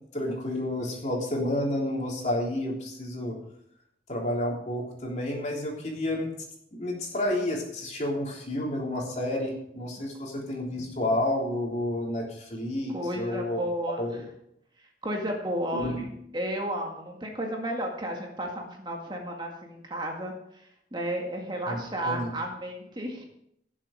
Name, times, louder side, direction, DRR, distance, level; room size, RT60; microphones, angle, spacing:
voice 1, 0.1-3.3 4.1-6.3 6.7-13.6 14.0-14.2 15.7-16.0 21.7-21.8 22.0-22.3, left 1 dB, 40° left, -1 dB, 3.4 m, -30 dB
voice 2, 12.9-14.2 15.0-16.1 16.3-20.3 20.9-23.2, right 1 dB, 25° right, 1 dB, 1.9 m, -32 dB
17.0 x 7.4 x 5.0 m, 0.75 s
head